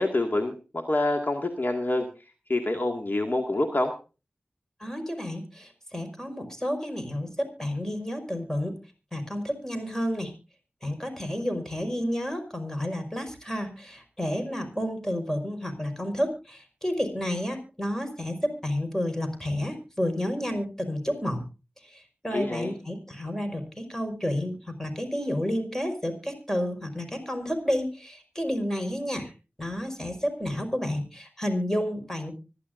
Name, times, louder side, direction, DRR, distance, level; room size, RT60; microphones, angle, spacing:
voice 1, 0.0-2.1 2.5-3.9 22.3-22.7, left 2 dB, 50° left, 3 dB, 2.1 m, -26 dB
voice 2, 4.8-8.7 9.1-10.3 10.8-21.4 21.8-29.3 29.6-32.3, equal, 10° left, 6 dB, 5.4 m, -30 dB
25.0 x 11.0 x 2.6 m, 0.32 s
wide cardioid pair, 45°, 4 cm